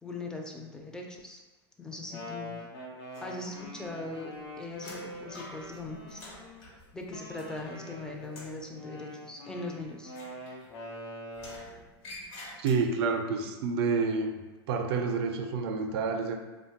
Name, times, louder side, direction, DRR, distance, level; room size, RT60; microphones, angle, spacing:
voice 1, 0.0-1.4 1.8-2.7 3.2-4.3 4.6-6.2 6.9-10.1, left 2 dB, 5° left, 0 dB, 0.4 m, -40 dB
Wind instrument woodwind instrument, 1.9-6.6 7.1-11.8, left 1 dB, 90° left, 0.7 m, -44 dB
sound 1, 3.1-3.9 4.2-7.9 8.2-8.6 10.1-11.0 11.3-13.1, left 1 dB, 55° left, 0.9 m, -49 dB
voice 2, 12.6-14.4 14.7-16.4, right 4 dB, 65° right, 5 dB, 0.4 m, -28 dB
3.0 x 2.1 x 2.8 m, 1.2 s
hypercardioid pair, 115°, 14 cm